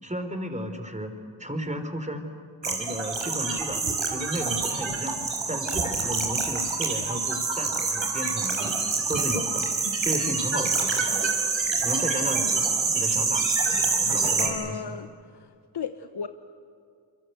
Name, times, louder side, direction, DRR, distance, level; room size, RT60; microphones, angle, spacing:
voice 1, 0.0-1.1 1.4-2.3 2.6-5.2 5.5-8.7 9.1-9.6 10.0-11.1 11.8-12.6 12.9-15.0, equal, 15° right, 7 dB, 4.4 m, -33 dB
sound 1, 2.6-14.5, right 4 dB, 70° right, 5.3 m, -26 dB
voice 2, 14.4-15.1 15.7-16.3, left 6 dB, 55° left, 9 dB, 1.2 m, -34 dB
28.5 x 23.5 x 8.3 m, 2.3 s
cardioid pair, 40°, 48 cm